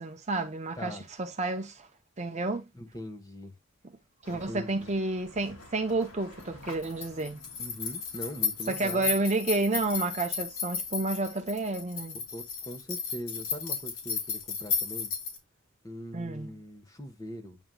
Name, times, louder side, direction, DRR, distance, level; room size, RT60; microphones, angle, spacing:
voice 1, 0.0-1.9 2.2-2.7 4.3-7.4 8.7-12.2 16.1-16.5, right 2 dB, 30° right, 0.7 m, -30 dB
voice 2, 2.7-3.5 4.3-4.9 7.6-9.1 12.3-15.1 15.8-17.6, equal, 15° left, 1.2 m, -41 dB
sound 1, 4.2-15.4, left 5 dB, 75° left, 2.9 m, -35 dB
9.2 x 4.7 x 2.3 m
head